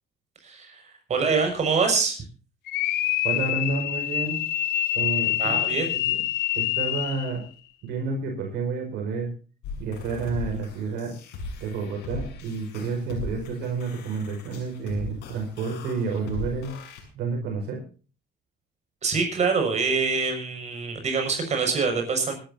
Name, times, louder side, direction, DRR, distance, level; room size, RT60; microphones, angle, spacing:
voice 1, 0.4-0.8 1.1-2.2 5.4-5.9 19.0-22.3, right 4 dB, 40° right, 4 dB, 6.2 m, -25 dB
sound 1, 2.7-7.4, left 13 dB, 75° left, 1.1 m, -26 dB
voice 2, 3.2-4.4 4.9-5.8 6.0-6.2 6.5-7.4 7.8-9.3 9.8-11.2 11.6-16.8 17.1-17.8, right 4 dB, 80° right, 1 dB, 5.3 m, -30 dB
sound 2, 9.6-17.0, left 2 dB, 90° left, 6.7 m, -38 dB
24.5 x 12.5 x 2.8 m, 0.36 s
cardioid pair, 110°, 17 cm